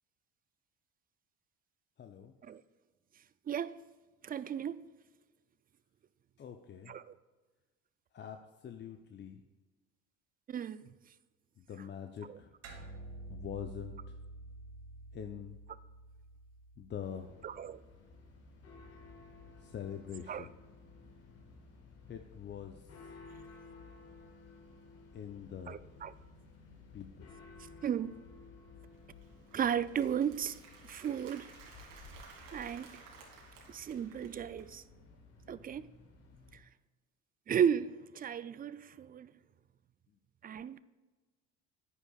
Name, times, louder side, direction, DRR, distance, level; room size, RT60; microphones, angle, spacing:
voice 1, 2.0-2.3 6.4-6.9 8.1-9.4 11.6-12.5 13.3-14.1 15.1-15.6 16.8-17.3 19.6-20.5 22.1-23.1 25.1-25.8 26.9-27.3 40.1-40.2, left 8 dB, 40° left, 5 dB, 0.7 m, -44 dB
voice 2, 3.5-3.8 4.2-4.9 6.9-7.2 10.5-10.9 12.3-12.4 17.4-17.8 20.3-20.4 25.7-26.1 27.8-28.1 29.5-30.6 30.9-31.5 32.5-32.9 33.7-34.8 35.5-35.9 36.5-36.6 37.5-39.3 40.4-40.8, right 8 dB, 30° right, 16 dB, 0.4 m, -34 dB
sound 1, 12.6-17.4, right 2 dB, 65° right, 2.4 m, -49 dB
sound 2, 17.0-36.6, left 3 dB, 55° left, 1.8 m, -56 dB
Applause, 28.9-34.7, right 4 dB, 85° right, 2.1 m, -56 dB
9.9 x 9.5 x 2.4 m, 1.2 s
supercardioid pair, 80°, 29 cm